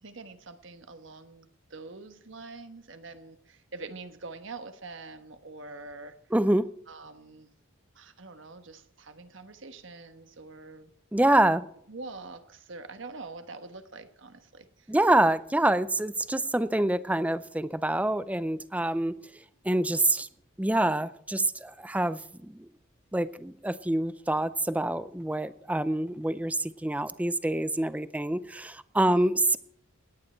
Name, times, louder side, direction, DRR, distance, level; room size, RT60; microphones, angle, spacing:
voice 1, 0.0-6.2 6.9-7.5 7.9-10.9 11.9-14.9 29.1-29.3, right 3 dB, 65° right, 9 dB, 1.2 m, -45 dB
voice 2, 6.3-6.7 11.1-11.6 14.9-19.1 19.6-20.3 20.6-22.6 23.1-29.6, right 1 dB, 5° right, 15 dB, 0.4 m, -26 dB
17.5 x 10.0 x 4.4 m, 0.71 s
head